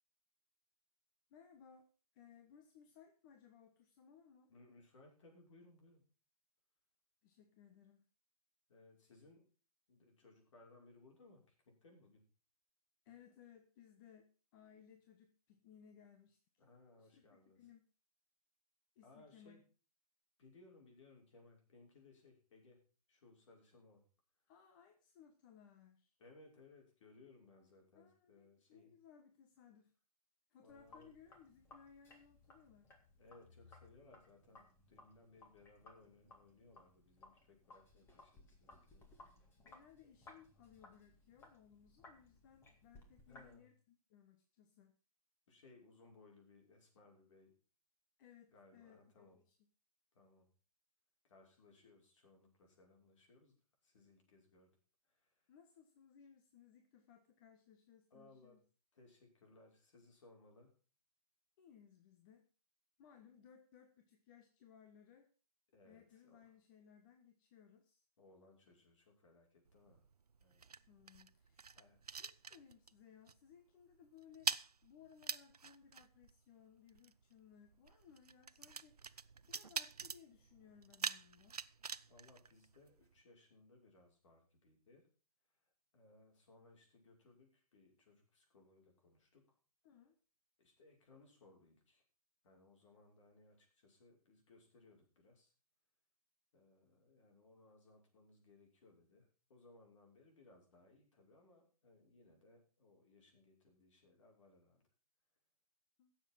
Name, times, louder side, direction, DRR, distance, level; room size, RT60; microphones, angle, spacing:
voice 1, 1.3-4.5 7.2-8.1 13.0-16.4 17.0-17.8 18.9-19.6 24.5-26.2 27.9-29.9 30.5-32.9 39.6-44.9 48.2-49.6 55.5-58.6 61.6-62.5 63.0-65.3 65.8-68.0 70.9-71.6 72.0-81.6 89.8-90.1 106.0-106.1, left 8 dB, 35° left, 6 dB, 1.5 m, -63 dB
voice 2, 4.5-6.0 8.7-9.5 9.9-12.2 16.6-17.7 19.0-19.6 20.4-24.0 26.2-28.9 30.6-31.2 33.2-39.1 43.3-43.7 45.5-47.6 48.5-49.4 50.1-50.5 51.2-54.8 55.0-55.5 58.1-58.6 58.9-60.8 65.7-66.5 68.2-70.0 70.4-70.7 71.7-72.0 82.1-85.1 85.5-85.6 85.9-89.6 90.6-92.0 92.4-95.5 96.5-104.8, left 2 dB, 55° left, 1 dB, 5.9 m, -65 dB
Sink (filling or washing), 30.7-43.6, left 2 dB, 10° left, 2.2 m, -63 dB
sound 1, 69.7-73.0 73.3-73.5 73.8-83.2, right 5 dB, 85° right, 0.7 m, -46 dB
16.5 x 7.4 x 5.7 m, 0.37 s
figure-of-eight pair, 135°, 19 cm